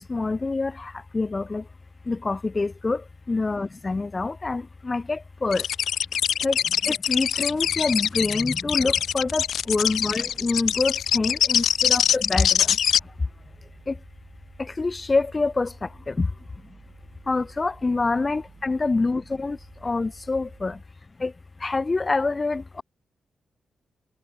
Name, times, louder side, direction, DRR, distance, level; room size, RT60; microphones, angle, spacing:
voice 1, 0.0-1.6 2.1-3.0 3.3-5.6 6.4-6.6 6.9-12.7 13.9-14.0 14.6-16.3 17.3-19.6 19.8-20.8 21.2-21.3 21.6-22.8, left 3 dB, 20° left, 1.0 m, -26 dB
sound 1, 5.5-13.0, left 9 dB, 75° left, 0.5 m, -23 dB
sound 2, 9.0-20.8, right 5 dB, 40° right, 6.4 m, -52 dB
wide cardioid pair, 165°, 0 cm